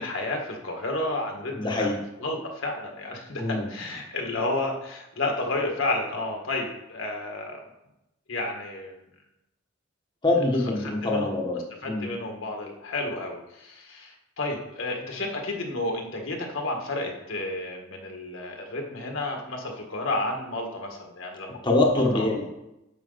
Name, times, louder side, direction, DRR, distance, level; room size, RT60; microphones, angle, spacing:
voice 1, 0.0-1.9 2.2-7.6 8.3-8.9 10.8-11.4 11.8-22.4, left 2 dB, 70° left, 1 dB, 1.7 m, -31 dB
voice 2, 1.5-2.0 3.4-3.7 10.2-12.1 21.6-22.4, left 2 dB, 25° left, -2 dB, 1.1 m, -24 dB
9.4 x 7.3 x 4.0 m, 0.89 s
head